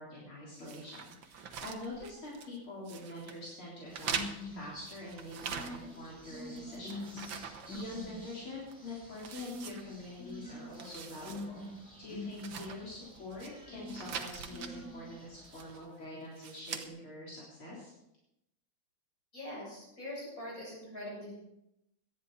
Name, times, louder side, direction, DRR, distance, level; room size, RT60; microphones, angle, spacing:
voice 1, 0.0-11.7 12.0-17.9, left 2 dB, 75° left, -6 dB, 4.6 m, -45 dB
sound 1, 0.6-2.6 2.9-3.4 3.9-6.1 6.4-8.3 8.7-8.8 9.2-10.3 10.7-11.5 11.8-11.9 12.3-13.5 13.9-14.7 15.4-15.9 16.3-16.9, right 7 dB, 65° right, 1.8 m, -43 dB
sound 2, 3.9-15.8, left 1 dB, 15° right, 5.4 m, -46 dB
voice 2, 19.3-21.3, left 1 dB, 40° left, -5 dB, 7.9 m, -43 dB
18.5 x 12.0 x 4.0 m, 0.83 s
omnidirectional pair, 2.3 m